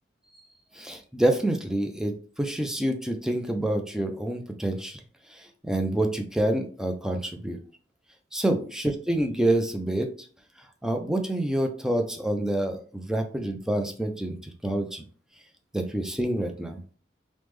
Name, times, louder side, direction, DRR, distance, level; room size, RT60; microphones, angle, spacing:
voice 1, 0.7-5.0 5.3-7.6 8.3-10.1 10.8-15.1 15.7-16.8, right 1 dB, 5° right, 4 dB, 0.3 m, -27 dB
3.3 x 2.0 x 3.1 m, 0.42 s
head